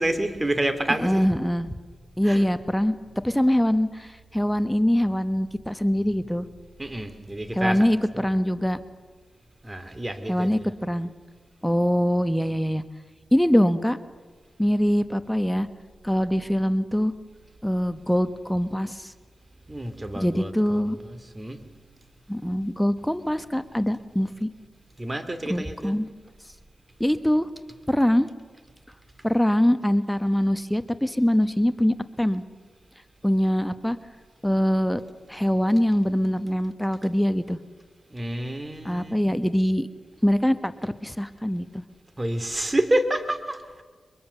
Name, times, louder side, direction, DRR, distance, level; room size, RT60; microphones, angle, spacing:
voice 1, 0.0-1.3 2.2-2.5 6.8-7.9 8.1-8.3 9.6-10.5 19.7-21.6 25.0-25.9 38.1-39.3 42.2-43.8, right 1 dB, 25° right, 10 dB, 2.5 m, -28 dB
voice 2, 1.0-1.7 2.2-2.9 3.2-6.5 7.5-8.8 10.3-11.1 11.6-12.8 13.3-14.0 14.6-15.7 16.0-17.1 17.6-19.1 20.1-21.0 22.3-24.5 25.5-26.1 27.0-27.5 27.9-28.3 29.2-32.4 33.2-34.0 34.4-35.0 35.3-37.6 38.8-39.9 40.2-41.8, equal, 5° left, 12 dB, 1.1 m, -23 dB
23.0 x 22.5 x 6.8 m, 1.5 s
cardioid pair, 45°, 0 cm